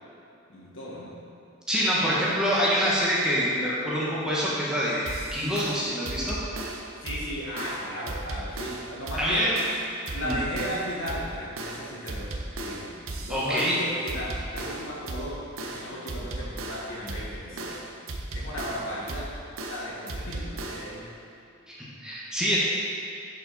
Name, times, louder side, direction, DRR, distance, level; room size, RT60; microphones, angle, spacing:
voice 1, 0.5-1.1 7.0-9.5 10.1-12.9 13.2-17.9 18.3-19.3 19.7-21.1, equal, 65° left, -6 dB, 2.0 m, -35 dB
voice 2, 1.7-6.4 9.2-9.5 10.2-10.4 13.3-13.7 21.7-22.6, equal, 5° right, -8 dB, 1.5 m, -26 dB
sound 1, 5.1-21.0, right 2 dB, 85° right, 0.8 m, -36 dB
10.0 x 5.3 x 4.3 m, 2.8 s
head